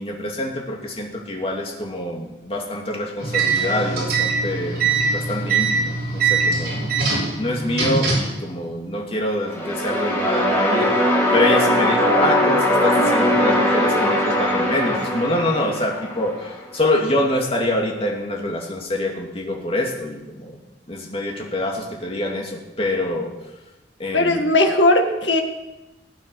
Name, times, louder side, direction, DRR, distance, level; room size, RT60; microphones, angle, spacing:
voice 1, 0.0-4.8 5.1-6.8 7.4-20.6 20.9-23.4 24.0-24.4, left 1 dB, 35° left, 0 dB, 2.5 m, -25 dB
sound 1, 3.2-8.4, right 4 dB, 60° right, 5.9 m, -22 dB
sound 2, 9.4-16.5, left 1 dB, 15° left, 4.0 m, -20 dB
voice 2, 24.1-25.4, left 1 dB, 80° left, 4 dB, 1.9 m, -17 dB
19.0 x 8.8 x 6.3 m, 1.0 s
head